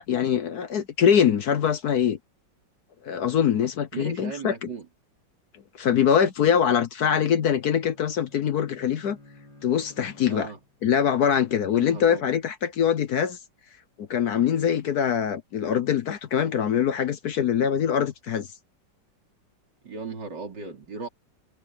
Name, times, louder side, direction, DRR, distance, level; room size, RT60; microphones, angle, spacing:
voice 1, 0.0-2.2 3.0-4.7 5.8-9.2 9.6-10.5 10.8-13.4 14.0-18.5, left 8 dB, 60° left, 1.3 m, -23 dB
voice 2, 3.9-4.9 10.3-10.6 11.7-12.3 19.8-21.1, right 5 dB, 65° right, 4.3 m, -37 dB
Bowed string instrument, 7.2-10.9, left 2 dB, 80° left, 8.2 m, -52 dB
omnidirectional pair, 2.0 m